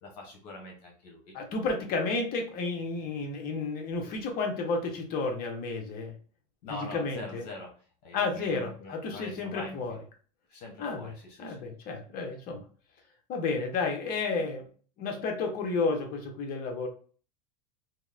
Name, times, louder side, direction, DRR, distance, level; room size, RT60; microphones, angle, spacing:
voice 1, 0.0-1.3 6.6-7.7 8.0-9.8 10.5-11.6, left 2 dB, 70° left, 0 dB, 0.9 m, -43 dB
voice 2, 1.3-6.1 6.7-7.5 8.1-10.0 10.8-11.1 11.4-12.6 13.3-14.7 15.0-16.9, left 3 dB, 45° left, 3 dB, 0.8 m, -31 dB
2.8 x 2.1 x 2.3 m, 0.42 s
supercardioid pair, 120°, 21 cm